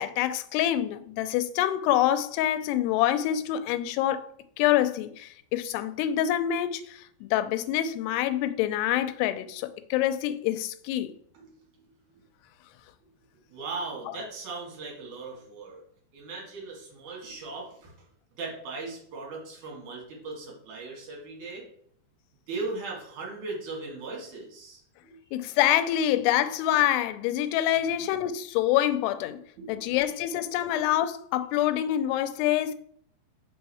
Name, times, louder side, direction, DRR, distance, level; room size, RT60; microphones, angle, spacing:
voice 1, 0.0-4.3 4.6-11.1 25.3-29.4 29.7-32.7, left 12 dB, 85° left, 2.6 m, -26 dB
voice 2, 13.5-15.8 16.1-17.9 18.4-21.6 22.5-25.1 29.6-29.8, right 3 dB, 55° right, 2.9 m, -38 dB
5.8 x 5.5 x 4.1 m
omnidirectional pair, 4.7 m